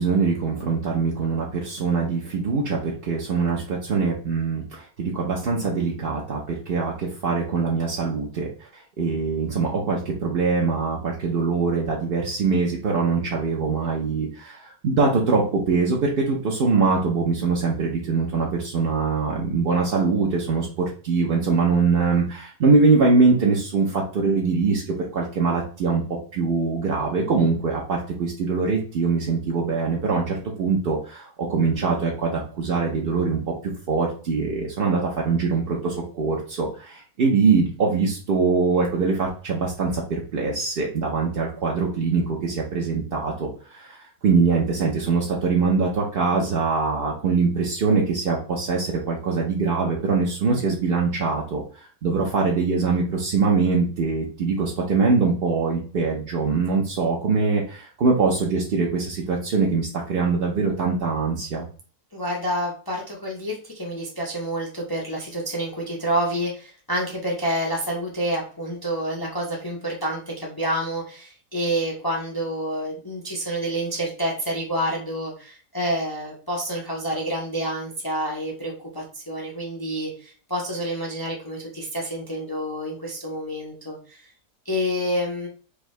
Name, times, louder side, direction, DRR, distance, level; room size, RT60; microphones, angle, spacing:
voice 1, 0.0-26.0 26.3-61.6, right 4 dB, 55° right, -2 dB, 0.6 m, -23 dB
voice 2, 62.1-84.3 84.6-85.5, equal, 35° left, -2 dB, 0.3 m, -28 dB
4.8 x 2.7 x 3.1 m, 0.40 s
omnidirectional pair, 1.7 m